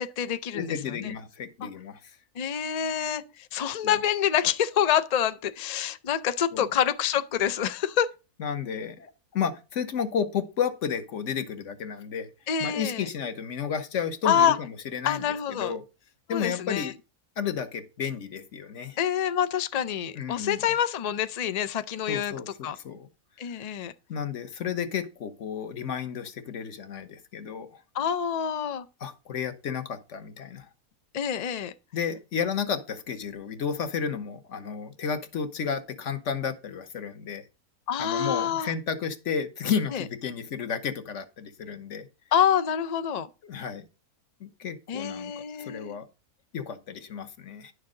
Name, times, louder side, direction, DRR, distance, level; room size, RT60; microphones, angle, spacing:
voice 1, 0.0-1.1 1.6-1.7 2.3-8.1 12.5-13.1 14.2-14.6 15.0-15.8 16.3-16.9 19.0-22.3 22.6-22.8 23.4-23.9 27.9-28.9 31.1-31.7 37.9-38.7 39.9-40.0 42.3-43.3 44.9-46.0, left 9 dB, 75° left, 0.3 m, -27 dB
voice 2, 0.5-2.1 3.8-3.9 6.5-6.7 8.4-12.3 12.6-15.8 16.3-16.9 17.4-19.0 20.2-20.6 22.1-23.1 24.1-27.7 29.0-30.7 31.9-37.4 38.0-42.1 43.5-43.9 44.4-46.1 46.5-47.7, left 7 dB, 55° left, 1.2 m, -32 dB
10.5 x 6.4 x 3.7 m
omnidirectional pair, 1.6 m